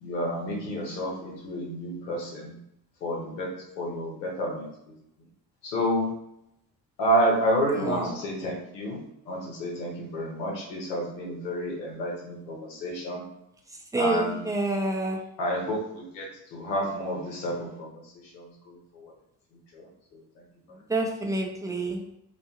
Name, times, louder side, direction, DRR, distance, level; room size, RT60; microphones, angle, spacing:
voice 1, 0.0-2.6 3.0-4.7 5.6-6.1 7.0-9.0 9.3-13.2 14.0-14.4 15.4-16.3 16.5-17.9 18.3-19.1 19.7-19.9, equal, 85° left, -1 dB, 0.8 m, -29 dB
voice 2, 7.7-8.1 13.7-15.3 20.7-22.0, right 2 dB, 5° right, 1 dB, 0.5 m, -28 dB
2.4 x 2.2 x 2.9 m, 0.79 s
hypercardioid pair, 50°, 49 cm